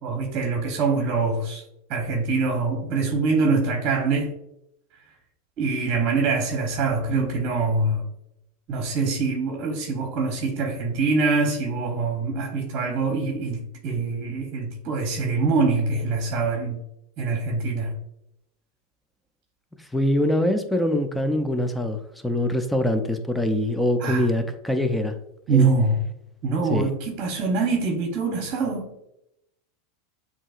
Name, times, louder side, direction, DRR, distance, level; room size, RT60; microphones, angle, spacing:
voice 1, 0.0-1.6 1.9-4.3 5.6-8.0 8.7-16.8 17.2-18.0 24.0-24.3 25.5-26.0 26.4-28.9, right 4 dB, 45° right, 1.0 m, -24 dB
voice 2, 19.9-25.2 25.5-25.7 26.7-26.9, left 1 dB, 5° left, 0.5 m, -24 dB
7.4 x 2.8 x 2.4 m
hypercardioid pair, 110°, 0 cm